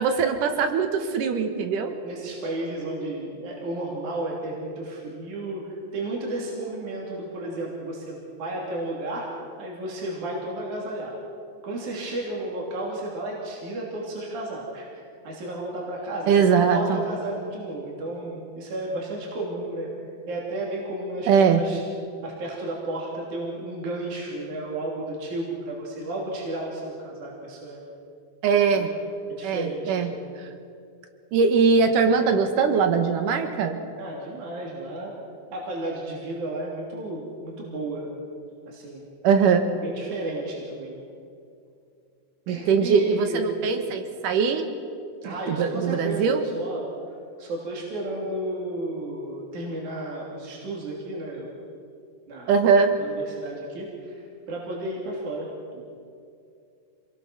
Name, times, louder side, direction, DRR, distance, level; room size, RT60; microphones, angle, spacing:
voice 1, 0.0-2.0 16.3-17.0 21.3-21.6 28.4-28.9 29.4-30.1 31.3-33.8 39.2-39.6 42.5-44.7 45.2-46.4 52.5-53.0, right 5 dB, 85° right, 7 dB, 3.1 m, -21 dB
voice 2, 2.0-11.1 11.6-16.3 16.6-19.9 20.3-21.8 22.2-27.8 28.7-29.0 29.3-30.1 34.0-35.1 35.5-38.1 38.7-39.0 39.8-41.0 42.5-43.4 45.2-46.8 47.4-51.5 52.3-52.5 53.0-55.8, right 2 dB, 65° right, -3 dB, 4.5 m, -33 dB
27.0 x 20.5 x 6.2 m, 2.4 s
omnidirectional pair, 3.6 m